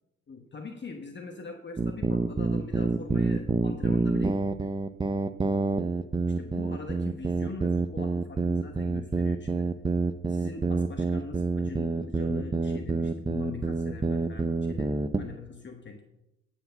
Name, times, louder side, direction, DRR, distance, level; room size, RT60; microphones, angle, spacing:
voice 1, 0.3-4.7 6.3-9.7 10.3-16.0, left 4 dB, 35° left, 4 dB, 1.1 m, -42 dB
sound 1, 1.8-15.3, right 3 dB, 15° right, 0.5 m, -27 dB
11.5 x 4.6 x 6.9 m, 0.93 s
cardioid pair, 90°, 30 cm